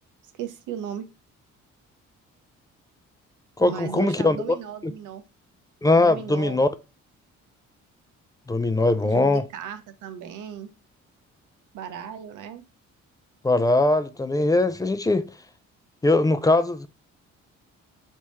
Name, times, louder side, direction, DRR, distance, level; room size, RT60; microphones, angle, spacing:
voice 1, 0.3-1.1 3.6-5.2 5.9-6.6 9.0-10.7 11.7-12.6, right 8 dB, 85° right, 0.9 m, -36 dB
voice 2, 3.6-4.4 4.8-4.9 5.8-6.7 8.5-9.4 13.4-15.3 16.0-16.9, left 2 dB, 10° left, 0.4 m, -21 dB
4.1 x 3.5 x 3.1 m
cardioid pair, 90°, 30 cm